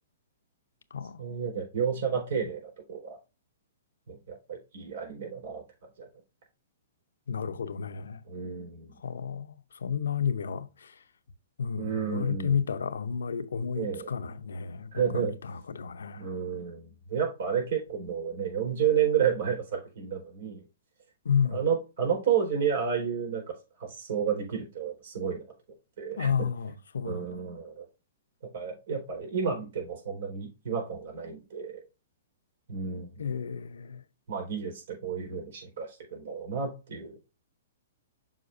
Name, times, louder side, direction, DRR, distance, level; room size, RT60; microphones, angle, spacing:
voice 1, 1.2-3.2 4.1-5.6 6.0-6.1 8.3-8.9 11.8-12.6 13.7-14.1 14.9-15.4 16.2-16.8 17.1-20.6 21.4-25.4 26.0-26.5 27.0-27.9 28.5-31.8 32.7-33.3 34.3-37.1, right 7 dB, 65° right, 4.3 m, -31 dB
voice 2, 7.3-8.2 9.0-9.5 9.8-10.9 11.6-16.2 21.2-21.7 26.2-27.4 33.2-34.0, left 7 dB, 85° left, 0.7 m, -31 dB
7.3 x 5.8 x 2.6 m
hypercardioid pair, 130°, 0 cm